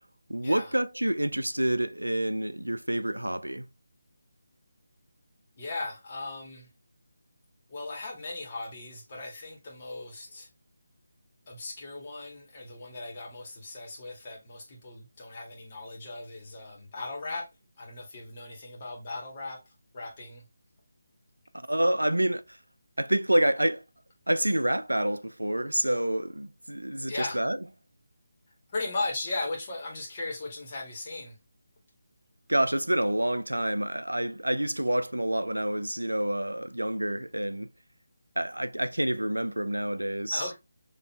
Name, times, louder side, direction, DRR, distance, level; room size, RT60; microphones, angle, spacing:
voice 1, 0.3-3.7 21.5-22.4 23.0-23.8 24.3-27.6 32.5-37.7 38.4-40.5, right 1 dB, 90° right, 0.4 m, -28 dB
voice 2, 5.6-6.7 7.7-10.5 11.5-17.5 17.8-19.6 19.9-20.4 27.1-27.4 28.7-31.3 40.3-40.5, left 2 dB, 35° left, 1.9 m, -37 dB
4.2 x 3.2 x 3.1 m
figure-of-eight pair, 155°, 0 cm